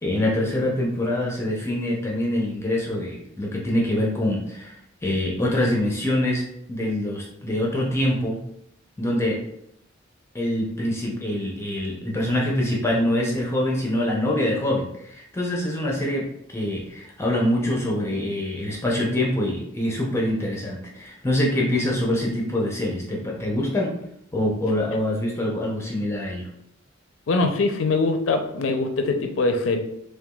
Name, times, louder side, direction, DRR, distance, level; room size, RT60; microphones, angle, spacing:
voice 1, 0.0-4.8 5.0-8.4 9.0-9.4 10.3-24.0 24.3-26.5, left 1 dB, 15° left, -2 dB, 0.6 m, -25 dB
voice 2, 27.3-29.8, left 3 dB, 70° left, 5 dB, 0.5 m, -22 dB
5.7 x 2.3 x 2.3 m, 0.76 s
head